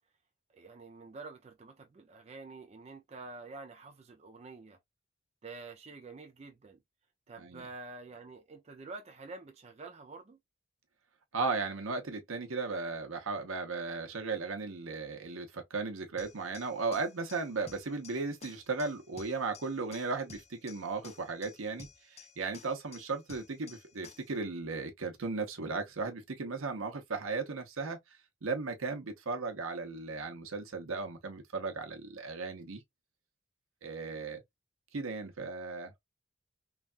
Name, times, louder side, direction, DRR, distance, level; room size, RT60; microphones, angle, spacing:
voice 1, 0.5-4.8 5.4-6.8 7.3-10.4, right 3 dB, 30° right, 0.4 m, -48 dB
voice 2, 11.3-28.0 28.4-32.8 33.8-34.4 34.9-35.9, right 4 dB, 85° right, 0.8 m, -36 dB
sound 1, 16.2-24.4, left 5 dB, 30° left, 0.5 m, -54 dB
3.2 x 2.2 x 2.4 m
head